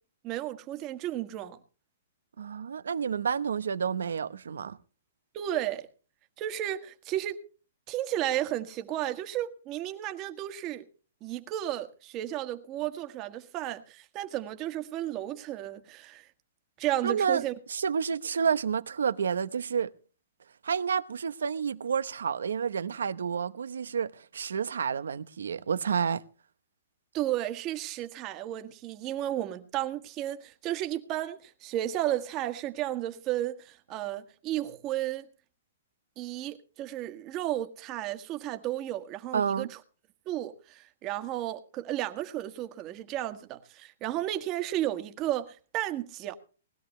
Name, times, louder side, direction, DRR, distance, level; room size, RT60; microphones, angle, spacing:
voice 1, 0.2-1.6 5.3-5.9 6.4-7.4 7.9-10.8 11.2-16.3 16.8-17.5 27.1-35.3 36.2-39.7 40.3-46.3, right 13 dB, 30° right, 1.5 m, -33 dB
voice 2, 2.4-4.8 17.0-19.9 20.6-26.2 39.3-39.7, right 7 dB, 90° right, 0.9 m, -30 dB
20.0 x 13.0 x 3.2 m
hypercardioid pair, 145°, 0 cm